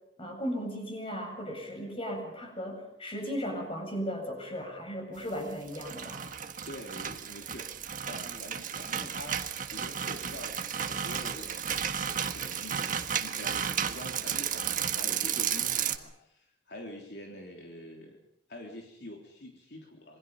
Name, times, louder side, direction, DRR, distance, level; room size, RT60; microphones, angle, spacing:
voice 1, 0.2-6.3, equal, 30° left, 3 dB, 7.5 m, -36 dB
sound 1, 5.5-16.0, right 8 dB, 50° right, 1.5 m, -33 dB
voice 2, 6.7-7.7 8.1-9.4 9.7-18.2 18.5-20.2, left 1 dB, 70° left, 1 dB, 3.5 m, -46 dB
27.0 x 23.0 x 5.5 m, 0.77 s
head